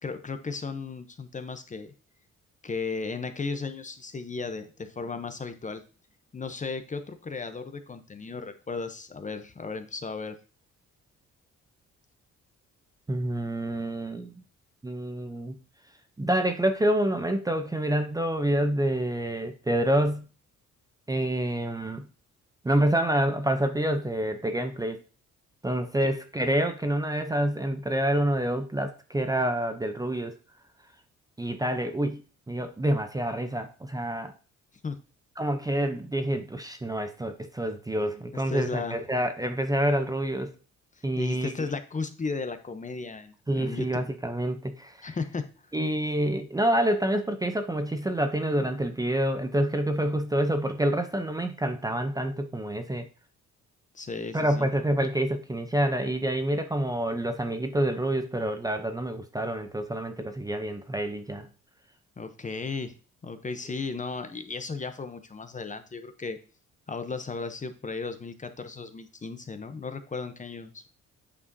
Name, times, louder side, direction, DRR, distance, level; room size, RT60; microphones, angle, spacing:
voice 1, 0.0-1.9 2.6-5.8 6.3-10.4 34.8-35.0 38.3-39.0 41.0-43.9 45.0-45.5 53.9-54.7 62.2-62.9 63.2-66.4 66.9-70.9, left 4 dB, 25° left, 9 dB, 0.7 m, -35 dB
voice 2, 13.1-14.3 14.8-15.6 16.2-20.3 21.1-22.1 22.6-25.0 25.6-30.3 31.4-32.2 32.5-34.3 35.4-40.5 41.0-41.5 43.5-45.1 45.7-53.1 54.3-61.5, right 1 dB, 10° right, 7 dB, 0.6 m, -27 dB
8.5 x 5.0 x 2.7 m, 0.35 s
cardioid pair, 90°, 30 cm